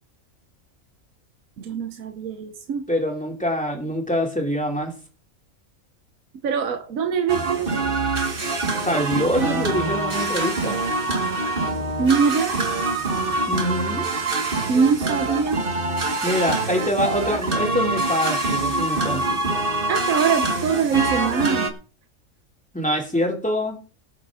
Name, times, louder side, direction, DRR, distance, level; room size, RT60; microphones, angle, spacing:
voice 1, 1.6-2.9 6.4-7.7 12.0-12.6 14.7-15.6 19.9-21.7, right 6 dB, 75° right, 1.4 m, -23 dB
voice 2, 2.9-4.9 8.8-10.8 13.5-14.1 16.2-19.4 22.7-23.8, equal, 5° left, 3.0 m, -25 dB
sound 1, 7.3-21.7, right 2 dB, 40° right, 1.7 m, -25 dB
19.0 x 7.7 x 3.7 m
omnidirectional pair, 1.4 m